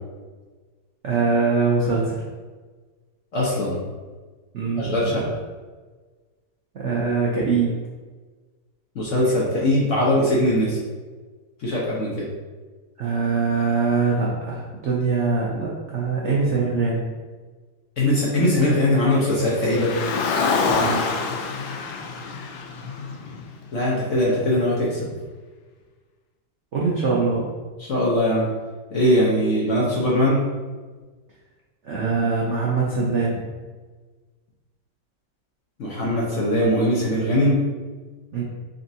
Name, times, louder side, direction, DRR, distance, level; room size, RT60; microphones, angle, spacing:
voice 1, 1.0-2.2 4.5-5.2 6.7-7.7 13.0-17.0 20.7-21.0 26.7-27.5 31.8-33.4 38.3-38.4, right 4 dB, 85° right, -4 dB, 0.6 m, -23 dB
voice 2, 3.3-3.8 4.8-5.3 8.9-10.8 11.6-12.3 18.0-19.9 23.7-25.1 27.8-28.5 28.9-30.4 35.8-37.6, left 1 dB, 60° left, -5 dB, 0.8 m, -21 dB
Car, 19.4-23.8, left 4 dB, 90° left, 1.3 m, -26 dB
4.0 x 3.4 x 2.7 m, 1.4 s
omnidirectional pair, 2.0 m